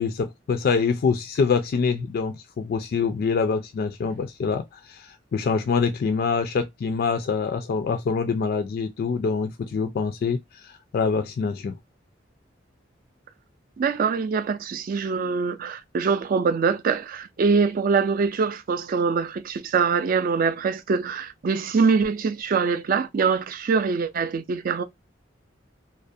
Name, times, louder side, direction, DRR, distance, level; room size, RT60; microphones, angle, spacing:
voice 1, 0.0-10.4 10.6-11.8, left 5 dB, 55° left, 0.3 m, -25 dB
voice 2, 13.8-24.8, right 5 dB, 45° right, 0.3 m, -23 dB
2.3 x 2.0 x 2.6 m
head